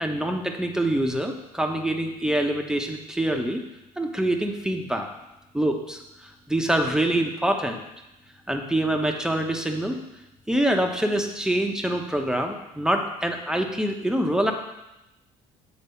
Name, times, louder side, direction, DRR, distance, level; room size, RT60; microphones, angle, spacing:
voice 1, 0.0-3.6 4.0-5.1 5.5-7.8 8.5-10.0 10.5-14.5, right 1 dB, 5° right, 3 dB, 1.0 m, -25 dB
8.4 x 4.4 x 7.0 m, 0.94 s
cardioid pair, 110°, 17 cm